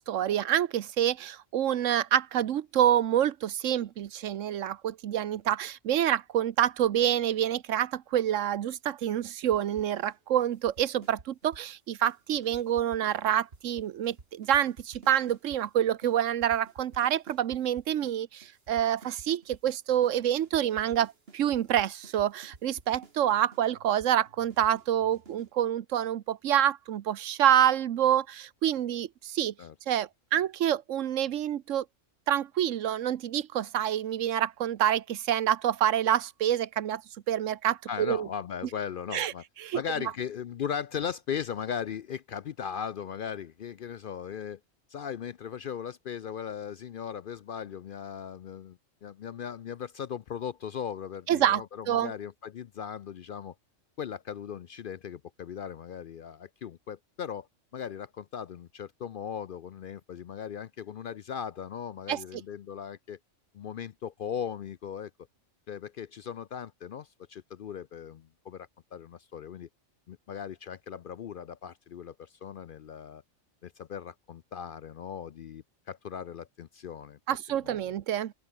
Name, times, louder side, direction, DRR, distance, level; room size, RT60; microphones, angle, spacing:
voice 1, 0.0-29.5 29.9-31.8 32.3-37.0 37.3-38.3 39.1-39.3 39.6-39.8 51.3-52.1 62.1-62.2 77.3-78.3, right 10 dB, 80° right, 1.1 m, -27 dB
sound 1, 9.5-10.2 10.4-11.7 12.0-12.2 12.4-15.6 16.0-16.1 16.4-18.2 18.4-19.7 20.0-20.1 20.4-25.5, right 4 dB, 50° right, 2.3 m, -52 dB
voice 2, 37.9-39.4 39.7-44.6 44.9-53.5 54.0-57.5 57.7-63.2 63.5-65.1 65.7-69.7 70.1-73.2 73.6-77.2 77.6-77.9, left 8 dB, 60° left, 0.6 m, -38 dB
open air
omnidirectional pair, 1.3 m